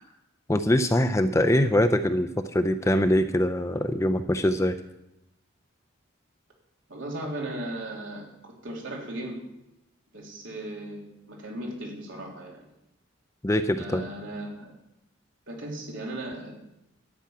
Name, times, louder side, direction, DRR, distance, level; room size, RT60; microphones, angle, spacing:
voice 1, 0.5-4.8 13.4-14.0, left 1 dB, 15° left, 8 dB, 0.5 m, -23 dB
voice 2, 6.9-9.4 10.1-12.7 13.8-14.7 15.5-16.5, right 1 dB, 70° right, -1 dB, 3.3 m, -37 dB
12.0 x 6.1 x 8.7 m, 0.87 s
head